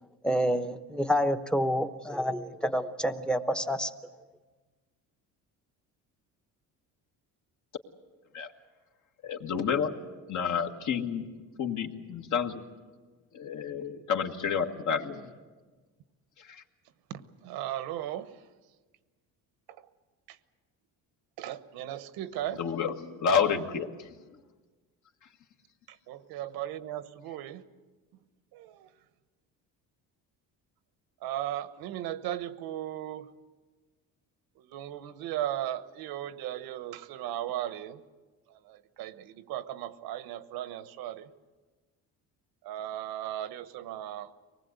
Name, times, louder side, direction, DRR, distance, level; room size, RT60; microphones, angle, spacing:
voice 1, 0.2-3.9, equal, ahead, 10 dB, 0.9 m, -28 dB
voice 2, 9.2-9.9 10.3-11.3 11.6-12.6 13.3-15.3 16.4-16.6 22.6-23.9, left 6 dB, 55° left, 5 dB, 1.8 m, -29 dB
voice 3, 17.1-18.3 21.4-22.6 26.1-27.6 28.5-28.9 31.2-33.2 34.7-38.0 38.7-41.3 42.6-44.3, right 12 dB, 85° right, 13 dB, 1.2 m, -36 dB
24.0 x 19.5 x 8.2 m, 1.3 s
cardioid pair, 130°, 36 cm